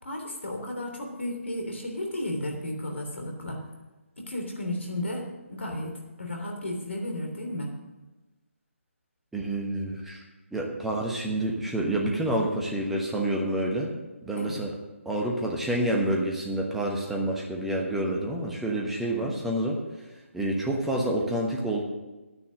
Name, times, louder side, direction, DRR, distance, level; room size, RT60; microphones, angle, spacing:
voice 1, 0.0-3.6 4.2-5.9 6.2-7.7 14.4-14.6 19.2-19.3, left 1 dB, 60° left, 2 dB, 3.3 m, -33 dB
voice 2, 9.3-10.2 10.5-13.9 14.2-14.8 15.0-19.8 20.3-21.8, right 1 dB, 5° right, -1 dB, 1.2 m, -28 dB
11.0 x 9.7 x 6.4 m, 1.1 s
figure-of-eight pair, 145°, 7 cm